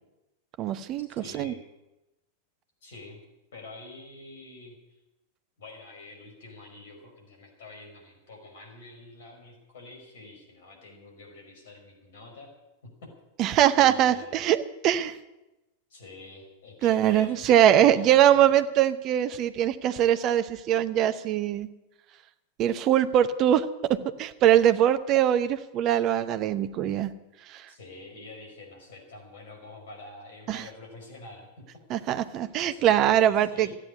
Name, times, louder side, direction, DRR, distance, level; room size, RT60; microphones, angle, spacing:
voice 1, 0.6-1.5 13.4-15.1 16.8-21.7 22.6-27.1 27.5-27.7 30.5-30.6 31.9-33.7, right 11 dB, 35° right, 12 dB, 0.9 m, -22 dB
voice 2, 1.2-1.6 2.8-3.2 3.5-5.0 5.6-12.5 12.8-13.1 13.8-14.5 15.9-18.5 27.7-31.7 32.6-33.8, left 2 dB, 60° left, 2 dB, 5.3 m, -47 dB
14.0 x 10.0 x 9.7 m, 0.99 s
figure-of-eight pair, 90°, 0 cm